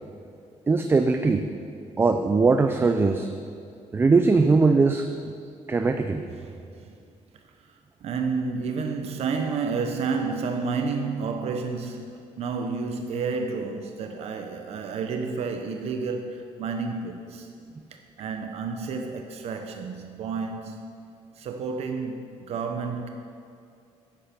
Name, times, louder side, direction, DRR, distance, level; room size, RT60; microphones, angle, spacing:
voice 1, 0.7-1.5 2.0-3.3 3.9-5.3 5.7-6.3, right 4 dB, 20° right, 6 dB, 0.4 m, -21 dB
voice 2, 6.3-6.9 8.0-17.5 17.9-21.0 21.4-23.1, right 4 dB, 60° right, 5 dB, 0.8 m, -30 dB
10.5 x 10.0 x 6.0 m, 2.4 s
cardioid pair, 155°, 12 cm